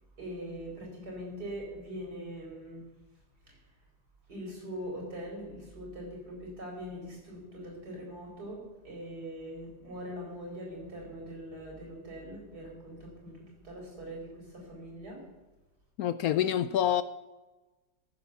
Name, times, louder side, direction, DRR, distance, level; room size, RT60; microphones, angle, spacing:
voice 1, 0.2-2.8 3.5-3.6 4.3-13.4 13.6-15.2, equal, 70° right, 5.2 m, -42 dB
voice 2, 16.0-17.0, left 10 dB, 70° left, 1.0 m, -27 dB
14.5 x 9.5 x 6.9 m
omnidirectional pair, 1.8 m